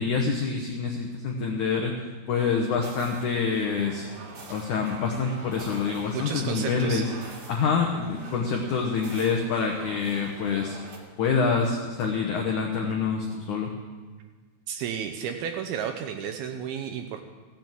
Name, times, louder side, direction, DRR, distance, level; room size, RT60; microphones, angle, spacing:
voice 1, 0.0-1.9 2.3-4.1 4.5-7.1 7.5-10.8 11.2-13.7, left 5 dB, 90° left, 1 dB, 1.7 m, -26 dB
sound 1, 2.3-11.0, right 3 dB, 55° right, 3.0 m, -45 dB
voice 2, 6.1-7.0 14.7-17.2, right 8 dB, 80° right, 5 dB, 2.3 m, -32 dB
16.0 x 7.7 x 7.4 m, 1.4 s
omnidirectional pair, 5.0 m